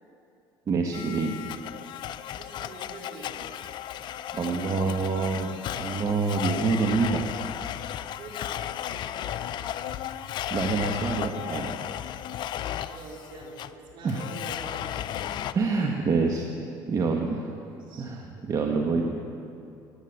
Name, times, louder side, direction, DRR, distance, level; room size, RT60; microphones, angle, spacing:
voice 1, 0.7-1.4 4.3-7.3 10.5-11.8 14.0-14.2 15.5-16.5 16.9-17.5 18.0-19.0, right 4 dB, 40° right, 2 dB, 1.3 m, -26 dB
Domestic sounds home sounds, 0.9-15.5, left 11 dB, 55° left, 0.5 m, -34 dB
voice 2, 2.4-3.3 8.2-9.6 12.8-15.5 17.6-18.1 18.4-18.5, right 2 dB, 65° right, -2 dB, 4.1 m, -46 dB
15.0 x 10.0 x 8.1 m, 2.6 s
supercardioid pair, 95°, 9 cm